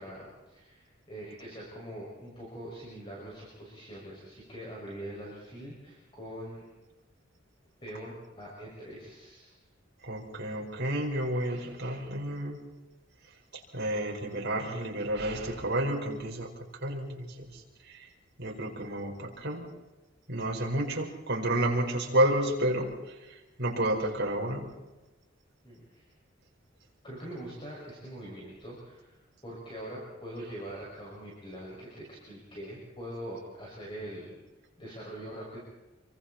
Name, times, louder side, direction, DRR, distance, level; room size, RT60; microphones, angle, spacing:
voice 1, 0.0-6.6 7.8-9.6 25.6-26.1 27.0-34.3 34.8-35.6, right 1 dB, 25° left, -4 dB, 6.3 m, -43 dB
voice 2, 10.0-12.6 13.5-16.5 16.8-17.6 17.9-18.1 18.4-19.7 20.3-24.8, right 1 dB, 55° right, 0 dB, 5.1 m, -30 dB
28.5 x 24.0 x 4.4 m, 1.1 s
head